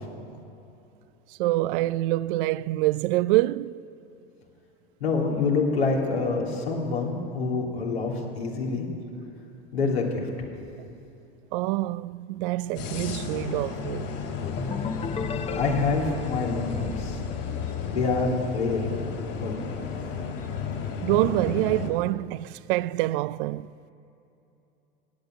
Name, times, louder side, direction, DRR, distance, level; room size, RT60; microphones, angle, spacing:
voice 1, 1.4-3.8 11.5-14.1 21.0-23.7, right 17 dB, 60° right, 0.5 m, -26 dB
voice 2, 5.0-8.9 9.7-10.3 15.5-17.2 17.8-18.8 19.4-19.6, left 4 dB, 90° left, 3.0 m, -26 dB
sound 1, 12.8-21.9, left 6 dB, 55° left, 3.2 m, -33 dB
sound 2, 14.4-18.1, left 4 dB, 20° left, 0.8 m, -35 dB
16.0 x 9.4 x 9.4 m
hypercardioid pair, 90°, 30 cm